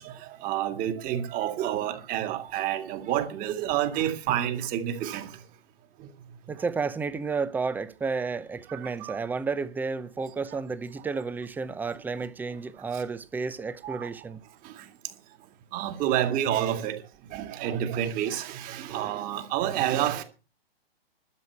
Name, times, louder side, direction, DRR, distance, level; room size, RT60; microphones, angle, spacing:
voice 1, 0.0-5.3 6.0-6.1 8.7-9.2 12.9-13.0 13.8-14.1 14.6-14.9 15.7-17.0 17.3-20.2, right 11 dB, 25° right, 2.2 m, -29 dB
voice 2, 6.5-14.4, right 4 dB, 5° right, 0.7 m, -31 dB
12.5 x 8.2 x 8.1 m
figure-of-eight pair, 120°, 30 cm